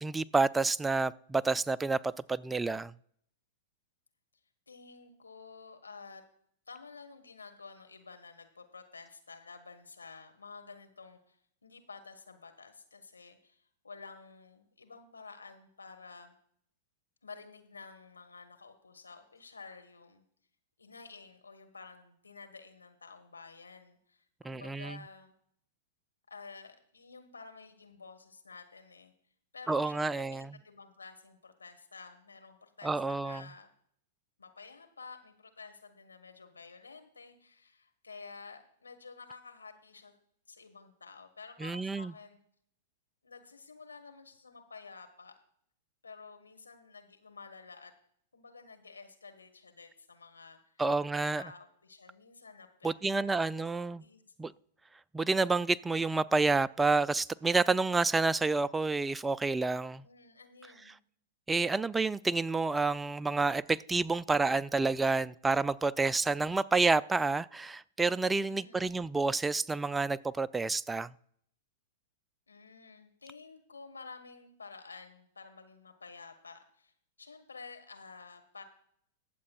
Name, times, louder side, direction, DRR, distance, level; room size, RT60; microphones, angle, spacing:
voice 1, 0.0-2.9 24.4-25.0 29.7-30.5 32.8-33.4 41.6-42.1 50.8-51.4 52.8-54.0 54.4-54.5 55.1-60.0 61.5-71.1, right 3 dB, 10° right, 0.3 m, -29 dB
voice 2, 4.7-6.2 6.7-16.4 17.2-20.2 20.8-25.3 26.3-29.1 29.5-33.7 34.4-40.2 40.5-42.4 43.2-45.3 46.0-47.9 48.3-50.8 51.3-53.5 53.9-54.2 60.0-61.0 68.5-69.0 72.5-76.9 77.2-78.6, left 4 dB, 90° left, 1.4 m, -51 dB
22.5 x 7.5 x 2.4 m
hypercardioid pair, 105°, 0 cm